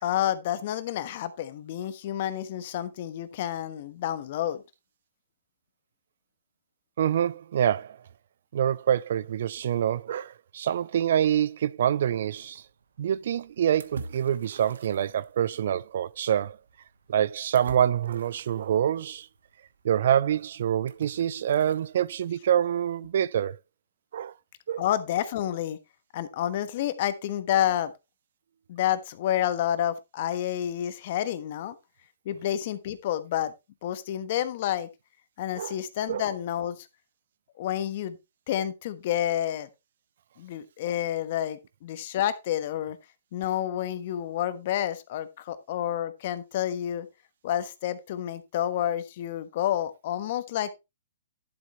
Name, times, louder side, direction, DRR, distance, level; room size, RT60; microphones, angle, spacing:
voice 1, 0.0-4.6 24.8-25.8 26.1-27.9 28.7-31.7 32.2-33.5 33.8-34.9 35.4-36.9 37.6-38.2 38.5-39.7 40.4-43.0 43.3-47.1 47.4-50.7, left 11 dB, 50° left, 1.2 m, -29 dB
voice 2, 7.0-8.0 8.5-12.6 13.0-16.6 17.1-19.3 19.8-23.6 24.1-24.3 24.7-24.8 35.6-35.8 36.1-36.2, right 10 dB, 60° right, 0.4 m, -26 dB
sound 1, 12.6-22.1, right 4 dB, 85° right, 1.3 m, -48 dB
11.0 x 7.6 x 3.1 m
hypercardioid pair, 145°, 0 cm